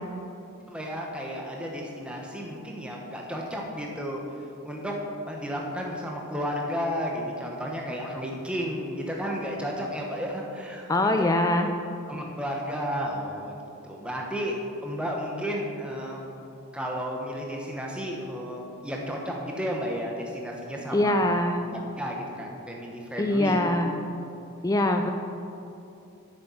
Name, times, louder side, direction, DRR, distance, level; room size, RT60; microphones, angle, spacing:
voice 1, 0.7-4.2 4.6-5.0 5.3-11.3 12.1-13.6 13.8-14.5 14.8-16.2 16.7-21.2 21.6-23.8, equal, 5° right, -1 dB, 1.0 m, -33 dB
voice 2, 10.9-11.7 20.9-21.6 23.2-23.9 24.6-25.1, left 1 dB, 15° left, 5 dB, 0.4 m, -23 dB
8.0 x 6.7 x 8.2 m, 2.8 s
head